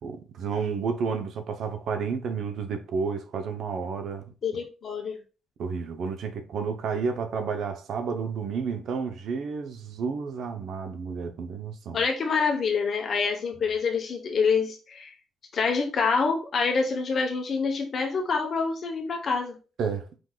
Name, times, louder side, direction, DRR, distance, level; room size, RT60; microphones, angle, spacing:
voice 1, 0.0-4.3 5.6-12.0 19.8-20.1, right 5 dB, 70° right, 0.7 m, -31 dB
voice 2, 4.4-5.2 11.9-15.1 15.5-19.6, left 5 dB, 50° left, 0.9 m, -26 dB
4.8 x 3.8 x 2.3 m
cardioid pair, 90°, 0 cm